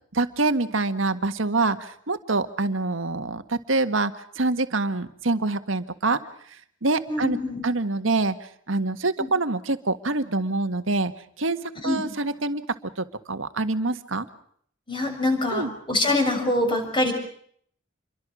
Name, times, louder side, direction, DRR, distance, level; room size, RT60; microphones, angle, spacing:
voice 1, 0.1-6.2 6.8-7.4 7.6-8.3 8.7-11.1 11.4-11.6 11.8-12.6 13.0-14.3 15.5-15.7, right 3 dB, 80° right, 9 dB, 1.7 m, -25 dB
voice 2, 7.1-7.6 9.2-9.3 11.8-12.0 14.9-17.1, left 2 dB, 25° left, 4 dB, 6.7 m, -24 dB
28.0 x 23.0 x 6.3 m, 0.63 s
head